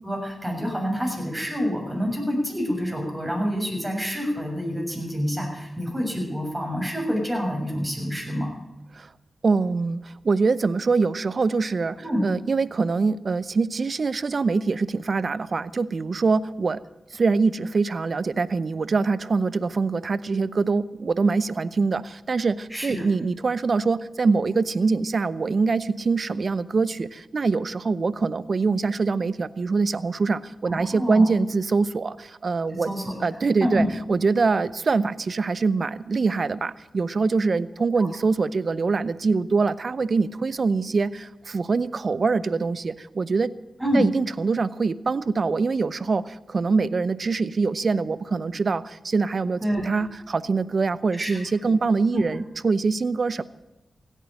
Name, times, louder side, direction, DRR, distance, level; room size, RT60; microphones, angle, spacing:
voice 1, 0.0-8.5 12.0-12.2 22.7-23.1 30.7-31.3 32.8-33.2 33.6-33.9 38.0-38.1 43.8-44.0 49.6-49.9 51.1-51.4 52.1-52.2, equal, 15° right, 1 dB, 6.9 m, -27 dB
voice 2, 9.4-12.0 12.2-16.8 17.1-32.9 33.2-43.5 43.9-53.4, right 4 dB, 60° right, 18 dB, 0.7 m, -24 dB
16.5 x 9.2 x 9.0 m, 1.0 s
cardioid pair, 45°, 0 cm